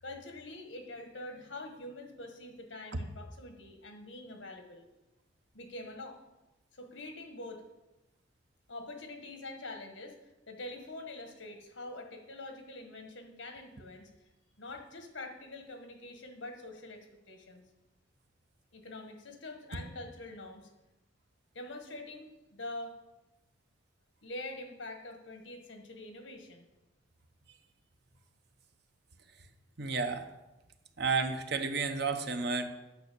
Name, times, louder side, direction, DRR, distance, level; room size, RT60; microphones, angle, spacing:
voice 1, 0.0-4.9 5.5-6.2 6.7-7.6 8.7-10.2 10.5-14.1 14.6-17.6 18.7-20.7 21.5-22.9 24.2-26.6, left 2 dB, 80° left, 5 dB, 1.5 m, -45 dB
voice 2, 29.8-30.2 31.0-32.7, right 4 dB, 60° right, 7 dB, 0.8 m, -31 dB
9.2 x 5.5 x 6.8 m, 1.0 s
head